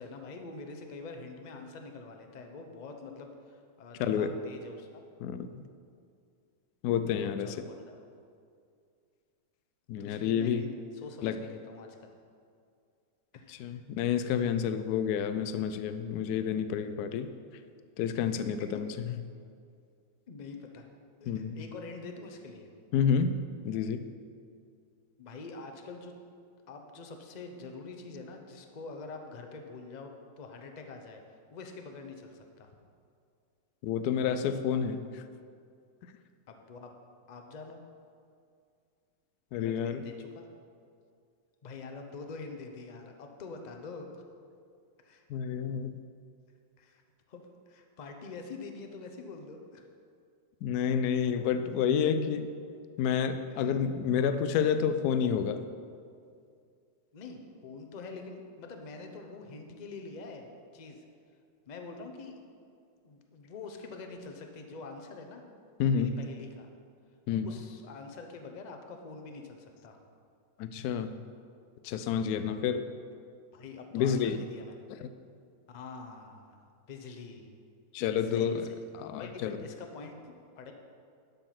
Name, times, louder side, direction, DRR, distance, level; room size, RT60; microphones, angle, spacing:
voice 1, 0.0-5.0 7.1-8.1 10.0-11.9 13.3-13.8 18.2-18.5 20.3-20.9 21.2-22.7 25.2-26.2 26.7-31.2 31.5-32.7 36.5-36.9 37.3-37.8 39.6-40.5 41.6-44.2 45.0-45.2 46.8-47.0 47.3-49.8 53.5-53.7 57.1-61.0 61.7-62.4 63.0-65.4 65.9-66.7 67.4-70.0 73.5-74.8 75.7-76.6 76.9-77.5 78.2-78.8 79.2-80.7, left 4 dB, 50° left, 4 dB, 0.5 m, -45 dB
voice 2, 4.0-4.4 5.2-5.5 6.8-7.7 9.9-10.6 11.2-11.4 13.5-17.3 18.0-18.9 21.3-21.6 22.9-23.4 23.6-24.0 33.8-35.2 39.5-40.0 45.3-46.0 50.6-52.5 53.0-55.6 65.8-66.1 67.3-67.5 70.6-71.1 71.8-72.8 73.9-74.4 75.0-75.1 77.9-78.6 78.9-79.6, left 7 dB, 70° left, 10 dB, 1.0 m, -29 dB
12.0 x 5.5 x 5.9 m, 2.3 s
omnidirectional pair, 2.0 m